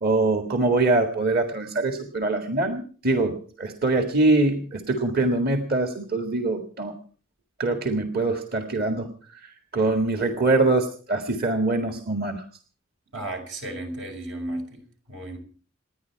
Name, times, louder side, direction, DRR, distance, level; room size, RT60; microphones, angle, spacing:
voice 1, 0.0-6.9 7.6-9.1 9.4-12.4, right 2 dB, 50° right, 5 dB, 1.8 m, -23 dB
voice 2, 13.1-14.8 15.1-15.4, right 1 dB, 85° right, 4 dB, 5.7 m, -34 dB
28.0 x 10.5 x 4.6 m, 0.41 s
head